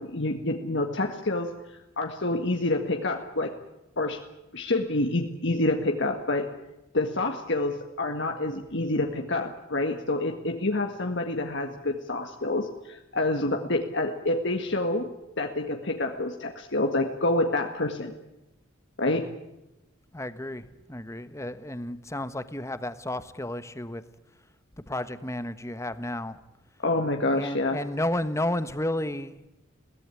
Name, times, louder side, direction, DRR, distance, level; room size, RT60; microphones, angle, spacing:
voice 1, 0.0-3.6 4.0-4.2 4.5-6.5 6.9-15.1 15.4-18.1 19.0-19.3 26.8-27.8, left 2 dB, 60° left, 4 dB, 1.9 m, -27 dB
voice 2, 20.1-24.0 24.9-26.4 27.3-29.4, left 1 dB, 15° left, 12 dB, 1.2 m, -32 dB
22.0 x 17.5 x 9.9 m, 0.94 s
head